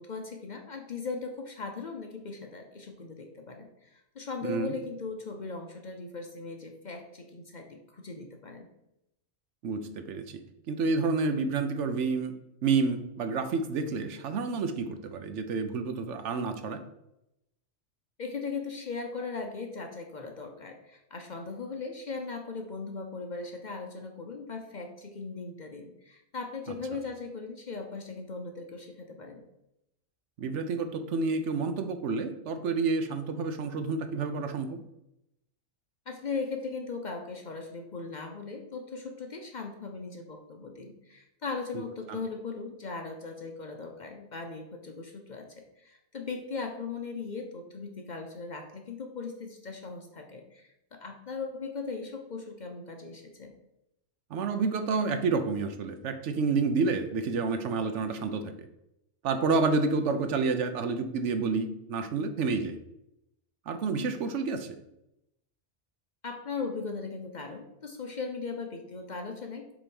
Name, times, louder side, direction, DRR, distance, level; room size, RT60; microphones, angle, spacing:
voice 1, 0.0-8.7 18.2-29.4 36.1-53.5 66.2-69.7, left 4 dB, 45° left, 3 dB, 0.7 m, -38 dB
voice 2, 4.4-4.8 9.6-10.4 10.7-12.3 12.6-16.8 30.4-34.8 41.7-42.2 54.3-58.7 59.2-62.8 63.7-64.8, right 4 dB, 75° right, 8 dB, 1.0 m, -29 dB
7.0 x 3.1 x 5.2 m, 0.85 s
omnidirectional pair, 1.3 m